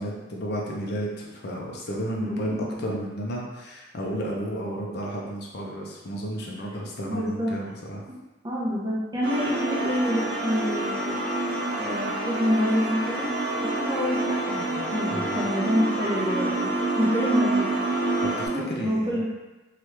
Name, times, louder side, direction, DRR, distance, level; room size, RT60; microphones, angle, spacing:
voice 1, 0.0-8.0 15.1-15.4 18.8-19.2, equal, 55° left, -2 dB, 0.5 m, -32 dB
voice 2, 2.2-2.9 7.0-7.5 8.4-11.2 11.8-13.4 13.7-17.7 18.5-19.3, equal, 20° right, -6 dB, 0.7 m, -27 dB
sound 1, 9.2-18.5, right 2 dB, 55° right, 0.8 m, -27 dB
3.0 x 2.4 x 3.2 m, 1.1 s
head